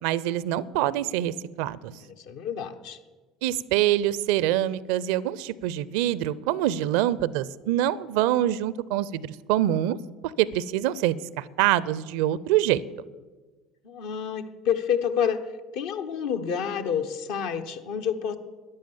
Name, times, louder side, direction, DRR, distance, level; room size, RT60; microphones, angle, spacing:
voice 1, 0.0-1.9 3.4-10.0 10.2-12.8, right 13 dB, 65° right, 20 dB, 0.5 m, -25 dB
voice 2, 1.9-3.0 13.8-15.4 15.7-18.4, left 8 dB, 65° left, 7 dB, 1.1 m, -29 dB
13.5 x 10.5 x 7.2 m, 1.3 s
figure-of-eight pair, 65°, 0 cm